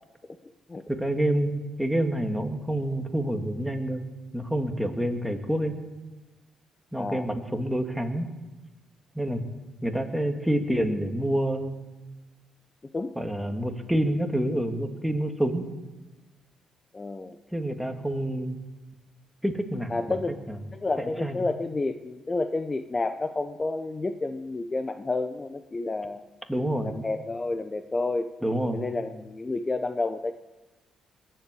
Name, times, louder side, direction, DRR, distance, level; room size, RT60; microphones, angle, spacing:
voice 1, 0.9-4.0 4.3-5.8 6.9-8.3 9.2-9.4 9.8-11.8 13.2-15.7 17.5-18.6 19.4-20.2 20.5-20.6 21.0-21.4 26.5-26.9 28.4-28.8, right 1 dB, ahead, 4 dB, 2.0 m, -27 dB
voice 2, 6.9-7.3 12.9-13.1 16.9-17.4 19.9-20.4 20.7-26.2 26.8-28.3 28.7-30.3, left 3 dB, 25° left, 9 dB, 0.7 m, -30 dB
20.5 x 7.8 x 8.3 m, 1.2 s
cardioid pair, 90°, 0 cm